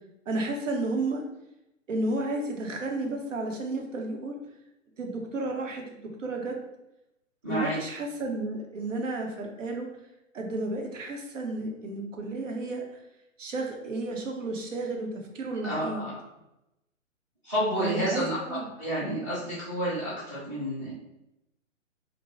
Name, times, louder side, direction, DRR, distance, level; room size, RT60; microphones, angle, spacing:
voice 1, 0.3-1.2 1.9-4.4 5.0-6.6 7.5-9.9 10.3-12.9 13.4-16.1 17.8-18.6, right 2 dB, 70° right, 1 dB, 0.7 m, -32 dB
voice 2, 7.4-7.8 15.6-16.2 17.4-18.4 18.8-20.9, equal, 15° right, -12 dB, 0.4 m, -30 dB
2.6 x 2.1 x 3.0 m, 0.89 s
figure-of-eight pair, 125°, 40 cm